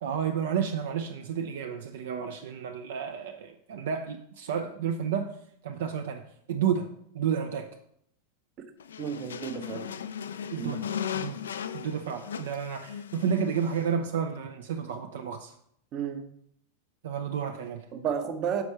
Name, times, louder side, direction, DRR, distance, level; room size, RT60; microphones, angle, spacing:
voice 1, 0.0-5.3 5.6-6.9 7.1-7.7 10.5-10.9 11.1-11.4 11.7-15.5 17.0-17.9, right 7 dB, 60° right, 5 dB, 0.5 m, -31 dB
sound 1, 8.8-13.9, left 8 dB, 65° left, 0.4 m, -37 dB
voice 2, 9.0-9.9 10.6-10.8 15.9-16.2 17.9-18.6, right 7 dB, 35° right, 7 dB, 0.9 m, -32 dB
7.0 x 5.2 x 4.4 m, 0.70 s
figure-of-eight pair, 90°, 0 cm